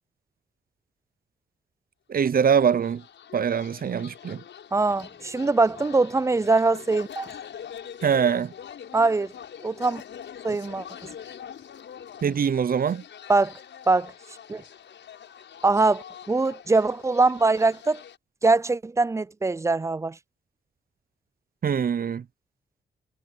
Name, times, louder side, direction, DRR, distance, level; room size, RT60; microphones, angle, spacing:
voice 1, 2.1-3.0 3.3-4.4 8.0-8.5 12.2-13.0 21.6-22.2, right 7 dB, 50° right, 0.7 m, -23 dB
sound 1, 2.3-18.2, left 8 dB, 70° left, 7.4 m, -44 dB
voice 2, 4.7-7.3 8.9-9.3 9.6-10.0 10.4-10.9 13.3-13.5 13.9-14.1 14.5-14.6 15.6-18.0 18.4-20.2, right 3 dB, 15° right, 0.4 m, -22 dB
supercardioid pair, 50°, 19 cm